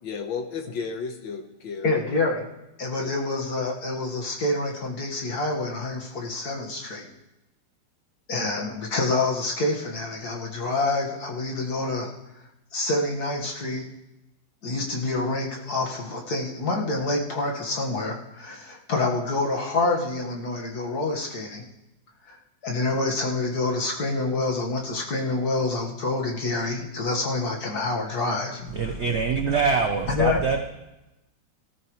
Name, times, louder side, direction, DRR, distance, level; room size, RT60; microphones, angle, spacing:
voice 1, 0.0-2.2 3.0-3.1 28.6-29.0, left 5 dB, 85° left, 5 dB, 2.0 m, -34 dB
voice 2, 1.8-2.5 2.8-7.1 8.3-12.1 12.7-13.9 14.6-21.6 22.3-22.4 22.6-28.6 30.1-30.4, left 2 dB, 55° left, -1 dB, 2.2 m, -27 dB
voice 3, 28.7-30.7, right 5 dB, 50° right, 4 dB, 0.9 m, -24 dB
18.0 x 13.5 x 3.2 m, 0.95 s
omnidirectional pair, 2.1 m